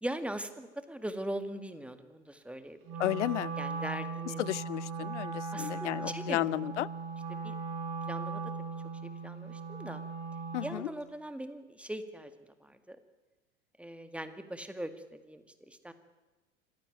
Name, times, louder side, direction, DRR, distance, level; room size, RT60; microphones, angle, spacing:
voice 1, 0.0-2.8 3.6-4.4 5.5-6.7 7.4-7.5 8.1-8.4 9.0-10.0 10.6-12.3 12.6-13.0 13.8-15.9, right 1 dB, 5° right, 9 dB, 2.0 m, -40 dB
Wind instrument woodwind instrument, 2.8-10.9, right 4 dB, 45° right, 5.1 m, -38 dB
voice 2, 3.0-3.5 4.4-6.9 10.5-10.9, left 15 dB, 70° left, 23 dB, 0.7 m, -33 dB
25.5 x 15.5 x 9.2 m, 1.2 s
figure-of-eight pair, 75°, 38 cm